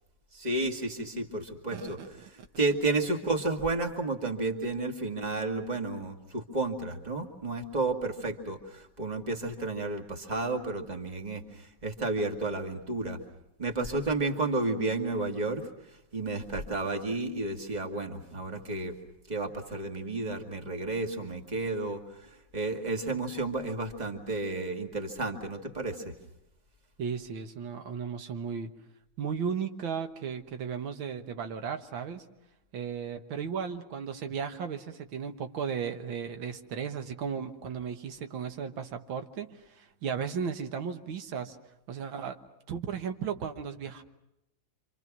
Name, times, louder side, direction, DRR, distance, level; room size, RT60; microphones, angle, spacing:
voice 1, 0.3-13.2 13.6-15.6 15.9-18.9 19.3-26.1, right 2 dB, 20° right, 4 dB, 2.1 m, -32 dB
voice 2, 1.7-2.1 27.0-28.7 29.2-32.3 32.7-41.6 41.9-42.4 42.7-44.0, right 7 dB, 90° right, 7 dB, 2.1 m, -35 dB
27.5 x 26.5 x 6.1 m, 0.89 s
omnidirectional pair, 2.1 m